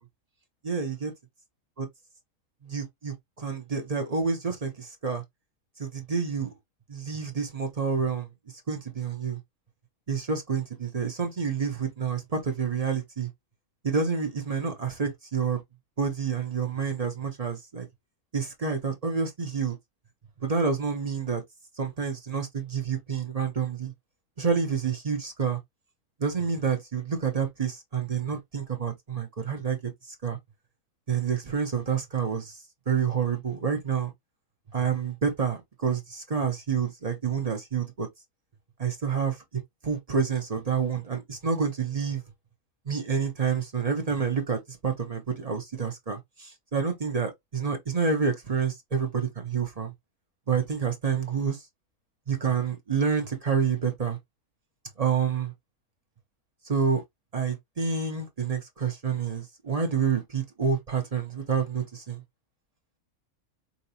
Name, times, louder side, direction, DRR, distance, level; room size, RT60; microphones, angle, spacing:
voice 1, 0.6-1.1 2.6-5.2 5.8-6.5 6.9-8.3 8.7-9.4 10.1-13.3 13.8-15.6 16.0-17.9 18.3-19.7 20.4-21.4 21.8-23.9 24.4-25.6 26.2-29.9 30.2-30.4 31.1-32.6 32.9-34.1 34.7-38.1 38.8-39.4 39.8-42.2 42.9-49.9 50.5-51.6 52.3-54.2 55.0-55.5 56.7-57.0 57.3-62.2, right 6 dB, 40° right, 0.6 m, -28 dB
5.0 x 2.8 x 2.6 m
omnidirectional pair, 1.6 m